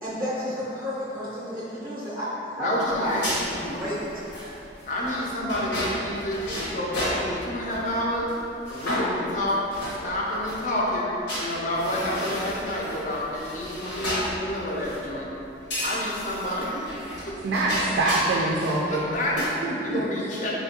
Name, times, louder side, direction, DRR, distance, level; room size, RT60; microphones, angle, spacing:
voice 1, 0.0-4.0 5.2-5.3, equal, 15° right, -10 dB, 0.5 m, -31 dB
voice 2, 2.6-3.8 4.9-8.3 8.7-9.6 10.0-15.3 15.8-17.3 18.6-19.5 19.8-20.5, left 1 dB, 45° left, -4 dB, 0.5 m, -29 dB
sound 1, 2.9-7.9 8.3-8.4 8.6-10.6 11.3-15.1 15.7-18.9 19.1-19.5, equal, 85° left, 1.0 m, -33 dB
voice 3, 17.4-19.1 19.6-20.0, right 2 dB, 70° right, -3 dB, 0.3 m, -25 dB
4.1 x 2.3 x 2.7 m, 2.9 s
head